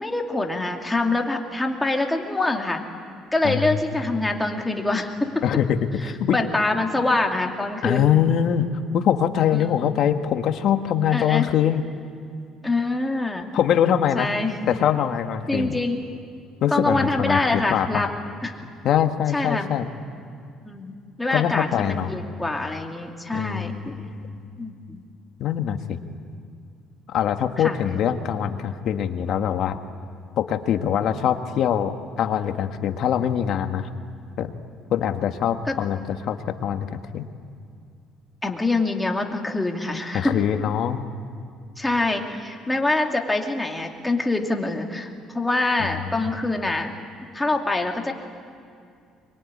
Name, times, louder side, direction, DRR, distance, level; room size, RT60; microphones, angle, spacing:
voice 1, 0.0-2.8 3.3-5.5 6.3-8.1 9.5-9.7 11.1-11.5 12.6-13.5 14.2-14.5 15.5-16.0 16.7-18.1 18.4-18.5 19.3-19.7 20.6-23.9 24.6-25.0 27.6-27.8 35.6-35.8 38.4-40.4 41.8-46.9 47.3-48.1, left 2 dB, 10° left, 2 dB, 2.7 m, -25 dB
voice 2, 3.4-4.1 5.4-6.4 7.8-8.7 8.9-11.8 13.5-14.3 14.7-15.8 16.6-18.0 18.8-19.9 21.3-22.1 23.3-24.3 25.4-26.0 27.1-29.8 30.4-31.9 32.2-33.9 34.4-34.5 34.9-37.3 40.1-41.0 45.8-45.9, left 9 dB, 60° left, 7 dB, 1.6 m, -23 dB
24.5 x 22.5 x 9.9 m, 2.3 s
cardioid pair, 100°, 0 cm